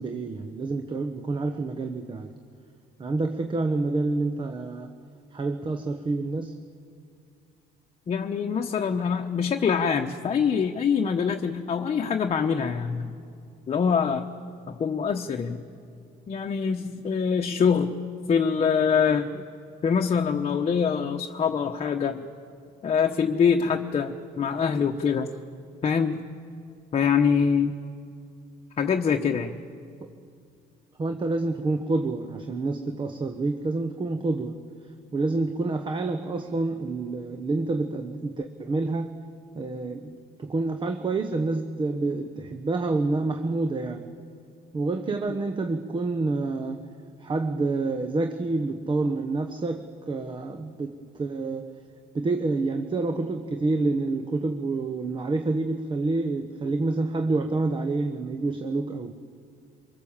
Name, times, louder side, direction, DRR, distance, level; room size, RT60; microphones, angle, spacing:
voice 1, 0.0-2.3 3.0-4.9 5.3-6.6 30.0-30.1 31.0-34.6 35.1-39.2 39.5-44.1 44.7-46.9 47.2-51.8 52.1-59.1, right 3 dB, 30° right, 6 dB, 1.1 m, -28 dB
voice 2, 8.1-13.1 13.7-14.2 14.7-15.6 16.3-17.9 18.3-19.4 19.8-22.3 22.8-25.3 25.8-26.2 26.9-27.8 28.8-29.6, left 6 dB, 40° left, 4 dB, 1.1 m, -24 dB
24.5 x 22.5 x 7.3 m, 2.3 s
cardioid pair, 110°, 17 cm